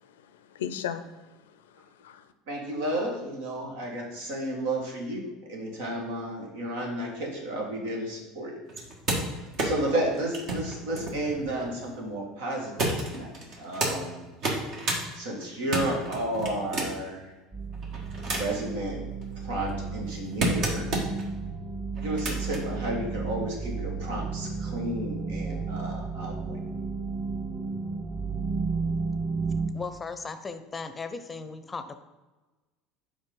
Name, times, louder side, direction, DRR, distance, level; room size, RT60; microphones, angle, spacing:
voice 1, 0.0-2.3, left 8 dB, 75° left, 11 dB, 0.5 m, -38 dB
voice 2, 2.5-8.6 9.4-14.3 14.9-17.3 18.2-19.0 19.4-20.9 22.0-26.6, right 1 dB, 70° right, 0 dB, 1.8 m, -32 dB
sound 1, 8.7-12.0 12.8-13.9 14.3-15.0 15.4-17.1 17.7-18.7 19.2-21.3 22.0-22.6 23.7-23.8, right 2 dB, 50° right, 1.7 m, -31 dB
sound 2, 17.5-29.7, right 4 dB, 30° right, 2.0 m, -33 dB
voice 3, 29.7-32.0, left 4 dB, 25° left, 10 dB, 0.6 m, -37 dB
5.4 x 4.9 x 5.3 m, 1.2 s
hypercardioid pair, 70°, 0 cm